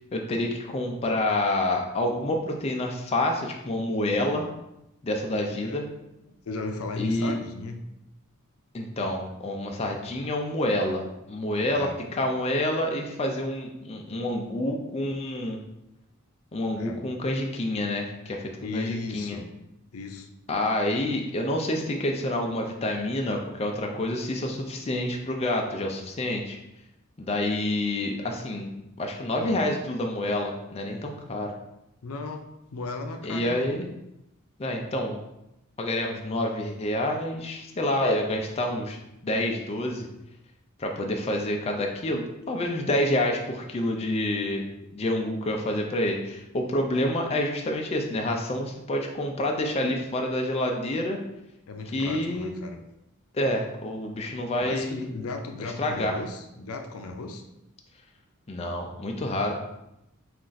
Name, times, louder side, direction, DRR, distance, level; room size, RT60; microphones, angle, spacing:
voice 1, 0.1-4.5 5.0-5.8 7.0-7.3 8.7-15.6 16.5-18.4 18.7-19.4 20.5-26.6 27.2-31.5 33.2-33.9 34.6-35.2 35.8-39.0 39.2-40.1 40.8-44.7 44.9-51.2 51.9-52.5 53.3-55.0 55.8-56.2 58.5-59.7, left 1 dB, 30° left, 1 dB, 0.4 m, -28 dB
voice 2, 6.4-7.8 11.7-11.9 16.7-17.0 18.6-19.5 19.9-20.3 29.4-29.6 32.0-33.7 51.7-52.8 54.6-57.4, left 3 dB, 85° left, 4 dB, 0.5 m, -36 dB
4.3 x 2.5 x 3.9 m, 0.88 s
head